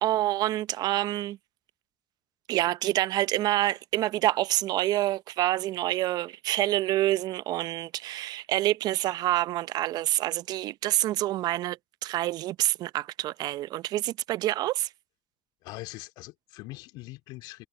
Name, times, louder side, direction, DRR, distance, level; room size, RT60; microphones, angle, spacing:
voice 1, 0.0-1.4 2.5-14.9, right 15 dB, 60° right, 0.8 m, -27 dB
voice 2, 15.6-17.7, left 20 dB, 70° left, 2.4 m, -42 dB
hypercardioid pair, 60°, 8 cm